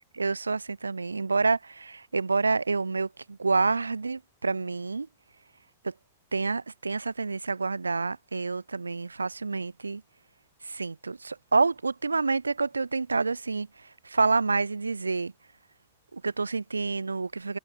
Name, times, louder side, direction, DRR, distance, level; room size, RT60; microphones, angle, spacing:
voice 1, 0.0-5.1 5.8-5.9 6.3-10.0 10.6-13.7 14.1-15.3 16.1-17.6, right 4 dB, 80° right, 7.5 m, -28 dB
figure-of-eight pair, 90°, 0 cm